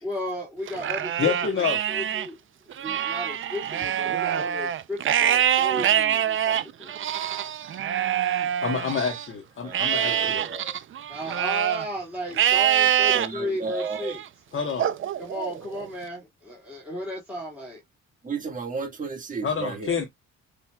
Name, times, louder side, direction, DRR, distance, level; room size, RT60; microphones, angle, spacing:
voice 1, 0.0-2.4 2.8-6.9 11.1-14.2 15.2-17.8, left 1 dB, 5° right, 2.4 m, -35 dB
Livestock farm animals working animals, 0.7-2.3 2.7-9.3 9.7-11.9 12.3-13.3 13.8-14.2 14.8-15.9, right 10 dB, 45° right, 0.5 m, -25 dB
voice 2, 1.2-1.8 8.6-10.4 14.5-15.0 19.4-20.0, left 6 dB, 40° left, 1.2 m, -28 dB
voice 3, 9.6-10.7 13.0-14.2 18.2-19.9, right 4 dB, 25° right, 1.7 m, -33 dB
5.7 x 3.3 x 2.3 m
cardioid pair, 90°, 30 cm